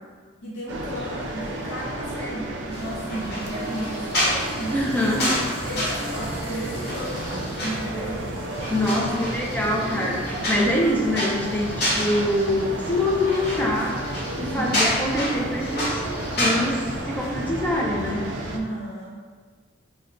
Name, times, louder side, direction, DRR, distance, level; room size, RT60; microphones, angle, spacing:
voice 1, 0.4-5.2 5.6-7.3 7.6-8.3 8.8-9.2 14.4-14.9 18.5-19.2, equal, 80° left, -6 dB, 0.6 m, -34 dB
sound 1, 0.7-18.6, right 2 dB, 85° right, 0.4 m, -32 dB
sound 2, 2.7-17.0, left 1 dB, 60° left, 1.0 m, -30 dB
voice 2, 4.7-5.3 8.7-14.0 14.4-16.0 16.4-18.2, left 1 dB, 10° left, -3 dB, 0.4 m, -24 dB
4.2 x 2.2 x 2.4 m, 1.5 s
head